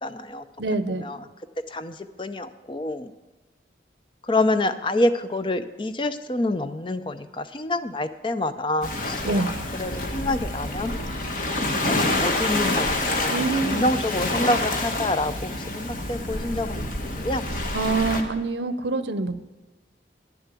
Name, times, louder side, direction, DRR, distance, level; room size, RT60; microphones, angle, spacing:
voice 1, 0.0-0.4 1.0-1.2 1.7-3.1 4.2-9.5 9.7-10.9 11.8-13.3 13.6-16.9 17.2-17.4, left 2 dB, 30° left, 11 dB, 0.5 m, -27 dB
voice 2, 0.6-1.1 9.2-9.5 13.3-13.9 17.7-19.4, right 3 dB, 80° right, 12 dB, 0.7 m, -25 dB
Waves surf, 8.8-18.2, left 2 dB, 45° left, 1.2 m, -27 dB
10.5 x 7.0 x 8.3 m, 1.1 s
head